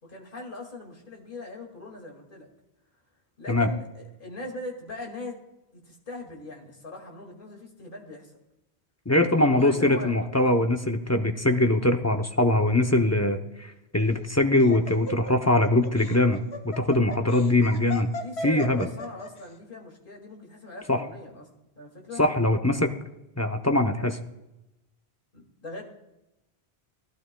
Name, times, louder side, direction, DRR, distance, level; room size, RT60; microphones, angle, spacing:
voice 1, 0.0-2.5 3.4-5.4 5.7-8.4 9.2-10.1 18.1-21.5 21.8-22.2 25.3-25.8, left 2 dB, 50° left, 1 dB, 2.3 m, -40 dB
voice 2, 9.1-18.1 18.4-18.9 20.9-21.0 22.2-22.9 23.4-24.2, left 1 dB, 20° left, 5 dB, 0.5 m, -22 dB
Laughter, 14.0-19.5, left 1 dB, 75° left, 1.4 m, -37 dB
17.5 x 12.5 x 2.2 m, 0.96 s
omnidirectional pair, 1.1 m